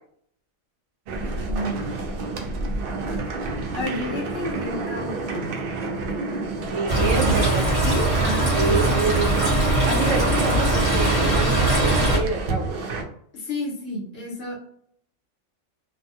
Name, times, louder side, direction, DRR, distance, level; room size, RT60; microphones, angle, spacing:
sound 1, 1.1-13.0, right 3 dB, 60° right, 0.7 m, -30 dB
voice 1, 1.4-1.8 3.7-5.5 6.9-7.4 7.8-9.4 13.3-14.6, left 1 dB, 55° left, -2 dB, 1.0 m, -31 dB
voice 2, 6.7-7.7 8.5-9.5 9.9-12.7, right 4 dB, 85° right, 2 dB, 1.0 m, -27 dB
sound 2, 6.9-12.2, right 2 dB, 30° right, 0.9 m, -21 dB
2.6 x 2.2 x 2.6 m, 0.66 s
omnidirectional pair, 1.3 m